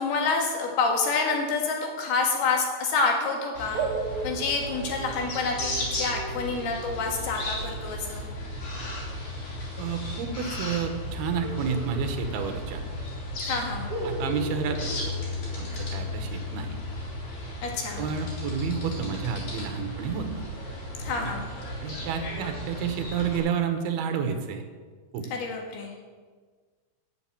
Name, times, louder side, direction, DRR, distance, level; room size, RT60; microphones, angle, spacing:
voice 1, 0.0-3.8 4.2-8.3 13.5-13.9 17.6-18.1 21.0-21.5 25.3-25.9, left 4 dB, 75° left, 1 dB, 3.8 m, -28 dB
sound 1, 3.6-23.4, left 1 dB, 50° left, 4.3 m, -35 dB
sound 2, 3.7-9.2 11.4-12.9 13.1-13.2 13.9-16.1, right 3 dB, 55° right, 2.8 m, -38 dB
voice 2, 9.8-12.8 14.0-15.1 15.5-16.8 18.0-20.3 21.2-21.3 21.8-24.6 25.1-25.3, right 7 dB, 75° right, 6 dB, 3.0 m, -30 dB
12.0 x 6.9 x 8.7 m, 1.5 s
omnidirectional pair, 4.6 m